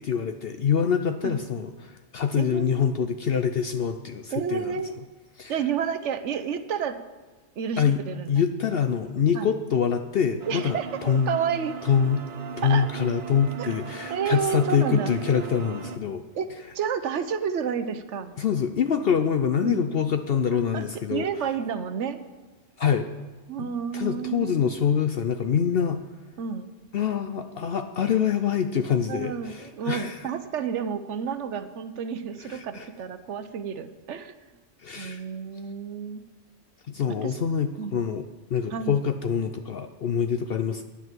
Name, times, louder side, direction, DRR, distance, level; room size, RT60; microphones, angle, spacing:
voice 1, 0.0-4.8 5.4-5.5 7.8-8.0 8.3-11.4 11.8-12.2 12.6-16.2 18.4-21.3 22.8-23.1 23.6-26.0 26.9-30.2 32.5-32.9 34.8-35.2 36.9-40.8, left 7 dB, 60° left, 8 dB, 0.8 m, -25 dB
voice 2, 2.4-2.8 4.3-4.9 5.5-7.0 7.6-8.3 9.3-9.5 10.5-11.7 12.6-12.9 13.6-13.7 14.1-15.2 16.1-16.5 16.7-18.3 19.6-19.9 20.7-20.8 21.1-22.2 23.5-24.6 26.4-26.7 29.1-34.3 35.0-36.2 37.2-37.3 37.8-38.1 38.7-39.0, right 7 dB, 75° right, 11 dB, 1.1 m, -30 dB
sound 1, 10.4-16.0, right 6 dB, 50° right, 0.8 m, -38 dB
10.0 x 8.3 x 7.5 m, 1.3 s
omnidirectional pair, 1.3 m